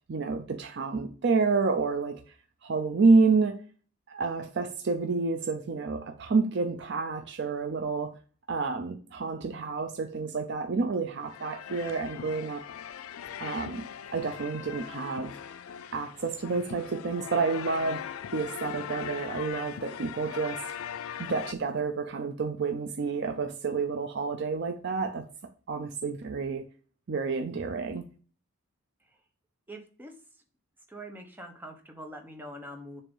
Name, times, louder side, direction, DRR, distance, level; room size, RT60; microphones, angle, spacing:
voice 1, 0.1-2.2 2.6-3.6 4.1-8.2 8.5-12.6 13.4-13.8 14.1-15.3 15.9-18.0 18.3-20.6 21.2-25.3 25.7-26.7 27.1-28.0, right 4 dB, 55° right, 0.5 m, -29 dB
sound 1, 11.2-21.5, left 8 dB, 85° left, 0.4 m, -40 dB
voice 2, 29.7-30.1 30.9-33.0, right 1 dB, 10° right, 1.0 m, -43 dB
7.0 x 2.8 x 5.3 m
head